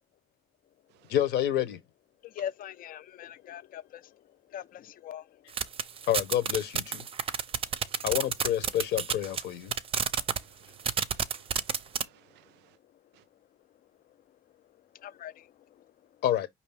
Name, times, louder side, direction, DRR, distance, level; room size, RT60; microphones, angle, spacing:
voice 1, 1.1-1.8 6.1-7.0 8.0-9.7 16.2-16.5, left 11 dB, 75° left, 1.1 m, -28 dB
voice 2, 2.2-5.4 10.7-10.8 14.9-15.9, left 10 dB, 55° left, 0.5 m, -42 dB
sound 1, 5.5-9.4 9.7-10.4 10.8-12.0, right 7 dB, 35° right, 0.5 m, -29 dB
voice 3, 7.7-8.1 10.3-12.8 13.1-13.2, right 16 dB, 85° right, 0.5 m, -61 dB
5.2 x 2.9 x 3.4 m
cardioid pair, 110°, 17 cm